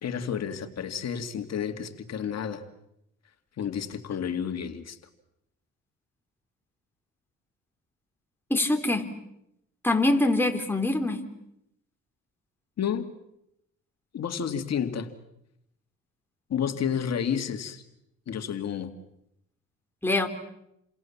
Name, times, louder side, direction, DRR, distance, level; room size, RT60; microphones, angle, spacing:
voice 1, 0.0-2.6 3.6-5.0 12.8-13.1 14.1-15.1 16.5-17.8 18.3-18.9, left 8 dB, 60° left, 7 dB, 2.4 m, -30 dB
voice 2, 8.5-9.0 9.8-11.2 20.0-20.3, left 2 dB, 5° left, 3 dB, 3.9 m, -24 dB
30.0 x 26.0 x 7.3 m, 0.81 s
cardioid pair, 90°, 30 cm